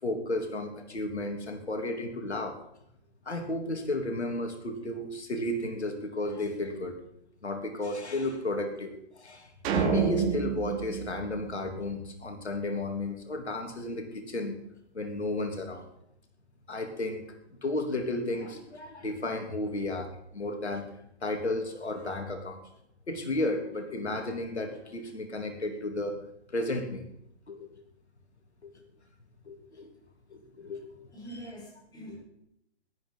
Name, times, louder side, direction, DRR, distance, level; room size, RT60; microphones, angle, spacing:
voice 1, 0.0-2.6 3.2-6.9 7.4-14.6 14.9-15.8 16.7-17.3 17.6-20.9 21.2-22.6 23.1-26.2 26.5-27.0 27.5-27.7 28.6-28.7 29.5-29.9 30.3-30.9 32.1-32.2, left 1 dB, 80° left, 5 dB, 3.3 m, -33 dB
sound 1, 9.6-12.1, right 6 dB, 30° right, 4.1 m, -29 dB
voice 2, 31.1-32.2, right 1 dB, 10° left, 0 dB, 5.8 m, -44 dB
18.0 x 12.0 x 5.6 m, 0.77 s
figure-of-eight pair, 130°, 33 cm